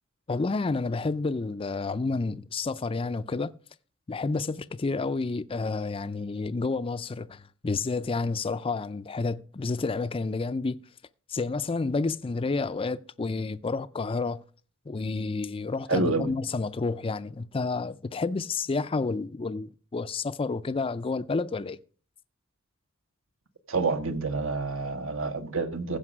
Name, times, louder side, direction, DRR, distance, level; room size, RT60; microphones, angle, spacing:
voice 1, 0.3-3.5 4.1-10.8 11.3-14.4 14.9-21.8, left 3 dB, 25° left, 0.4 m, -30 dB
voice 2, 15.9-16.3 23.7-26.0, right 3 dB, 75° right, 1.5 m, -28 dB
15.5 x 5.4 x 6.1 m
head